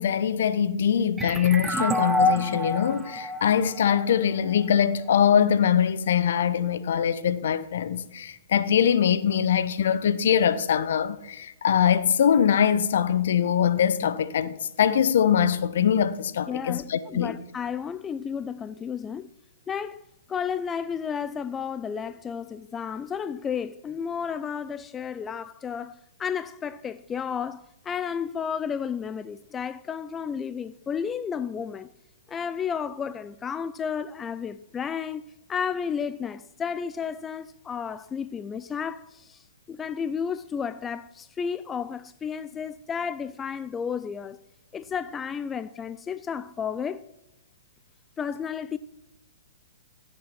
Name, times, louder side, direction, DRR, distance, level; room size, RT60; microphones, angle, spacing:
voice 1, 0.0-17.3, left 8 dB, 60° left, 1.0 m, -23 dB
sound 1, 1.2-4.6, left 1 dB, 10° right, 1.0 m, -27 dB
voice 2, 16.5-19.3 19.7-20.0 20.3-31.9 32.3-44.4 44.7-47.0 48.2-48.8, left 7 dB, 15° left, 0.4 m, -32 dB
17.0 x 7.7 x 5.9 m
figure-of-eight pair, 115°, 0 cm